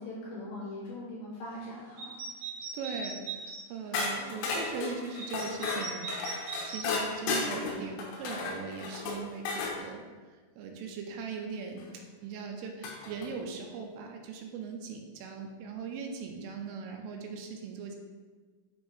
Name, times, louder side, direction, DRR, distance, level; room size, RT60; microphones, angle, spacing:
voice 1, 0.0-2.1, left 1 dB, 65° left, -9 dB, 4.3 m, -41 dB
sound 1, 2.0-3.6 5.2-6.9, right 4 dB, 70° right, 2.8 m, -39 dB
voice 2, 2.7-6.1 6.4-18.0, right 5 dB, 85° right, 3 dB, 3.1 m, -40 dB
sound 2, 3.9-9.8 11.8-11.9 12.8-13.3, left 4 dB, 90° left, 3.6 m, -34 dB
9.2 x 4.4 x 3.3 m, 1.4 s
omnidirectional pair, 5.8 m